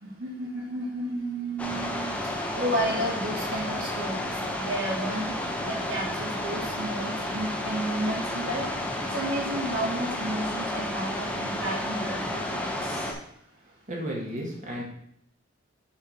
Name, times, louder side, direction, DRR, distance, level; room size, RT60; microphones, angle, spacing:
voice 1, 0.0-2.2 2.5-5.3 5.6-8.6 9.1-13.0, right 1 dB, 80° right, -10 dB, 3.1 m, -32 dB
sound 1, 1.6-13.1, left 1 dB, 5° left, 1.0 m, -31 dB
voice 2, 13.9-14.8, equal, 40° right, -2 dB, 2.2 m, -33 dB
7.1 x 4.5 x 5.8 m, 0.70 s
head